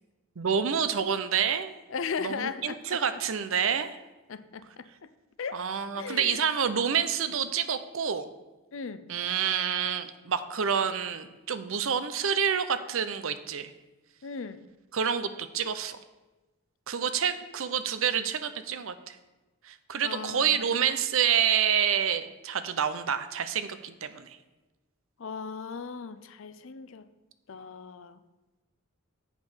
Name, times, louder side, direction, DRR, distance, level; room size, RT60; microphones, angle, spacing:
voice 1, 0.4-1.7 2.2-3.9 5.5-8.3 9.1-13.7 14.9-16.0 16.9-19.2 19.7-24.3, right 7 dB, 65° right, 11 dB, 0.6 m, -28 dB
voice 2, 1.9-3.0 4.3-4.9 5.4-5.6 5.9-6.4 8.7-9.0 14.2-14.6 20.0-20.6 25.2-27.1 27.5-28.2, left 5 dB, 60° left, 13 dB, 0.5 m, -37 dB
8.3 x 5.4 x 6.3 m, 1.1 s
head